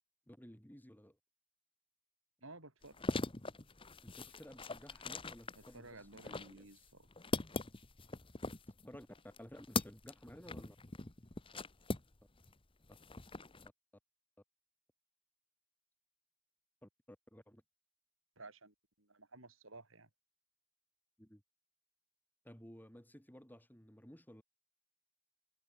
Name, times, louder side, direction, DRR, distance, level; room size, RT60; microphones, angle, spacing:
voice 1, 0.3-1.2 4.0-6.7 8.8-9.1 9.4-10.8 16.8-17.6 21.2-21.4 22.4-24.4, equal, 10° left, 8.0 m, -55 dB
voice 2, 2.4-2.9 5.7-7.1 18.4-20.1, right 2 dB, 70° right, 6.2 m, -55 dB
sound 1, 2.8-12.5 12.8-13.7, left 3 dB, 25° left, 1.2 m, -42 dB
head